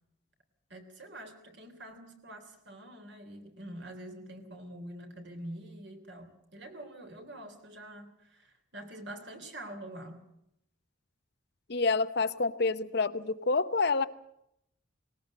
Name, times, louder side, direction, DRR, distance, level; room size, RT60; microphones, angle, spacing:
voice 1, 0.7-10.2, right 1 dB, 55° right, 6 dB, 3.4 m, -46 dB
voice 2, 11.7-14.1, left 3 dB, 50° left, 12 dB, 0.8 m, -28 dB
19.5 x 18.5 x 7.7 m, 0.76 s
head